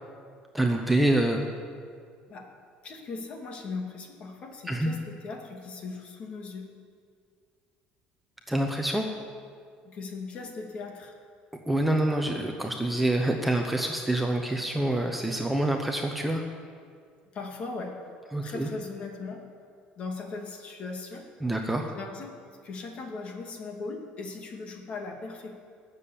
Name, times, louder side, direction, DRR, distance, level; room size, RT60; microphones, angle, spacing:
voice 1, 0.5-1.5 4.7-4.9 8.5-9.0 11.7-16.4 18.3-18.7 21.4-21.9, right 1 dB, 5° right, 2 dB, 0.9 m, -26 dB
voice 2, 2.8-6.7 9.8-11.2 17.3-18.0 18.4-19.4 20.0-21.3 21.9-22.4 22.6-25.5, left 3 dB, 40° left, 3 dB, 2.3 m, -38 dB
20.0 x 7.5 x 8.6 m, 2.1 s
cardioid pair, 155°, 3 cm